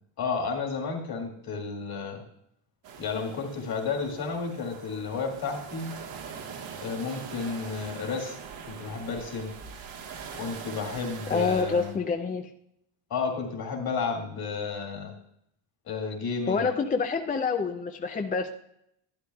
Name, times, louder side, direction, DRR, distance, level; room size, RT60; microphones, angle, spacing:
voice 1, 0.2-2.2 3.0-5.9 6.8-8.4 8.7-9.5 10.3-11.9 13.1-15.1 15.9-16.7, left 5 dB, 45° left, 1 dB, 2.1 m, -32 dB
sound 1, 2.8-12.0, right 6 dB, 70° right, 1.5 m, -42 dB
voice 2, 11.3-12.5 16.5-18.5, left 4 dB, 20° left, 5 dB, 0.3 m, -27 dB
12.0 x 11.5 x 2.3 m, 0.74 s
cardioid pair, 160°, 49 cm